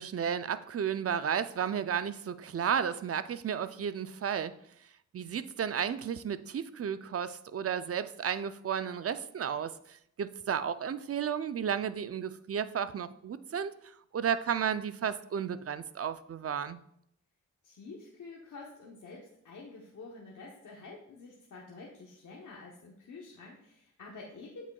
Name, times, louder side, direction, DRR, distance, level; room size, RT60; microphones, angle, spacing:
voice 1, 0.0-4.5 5.1-13.7 14.1-16.8, right 8 dB, 50° right, 13 dB, 0.4 m, -33 dB
voice 2, 17.6-24.7, left 3 dB, 75° left, -2 dB, 1.0 m, -48 dB
7.9 x 6.1 x 2.3 m, 0.73 s
cardioid pair, 50°, 30 cm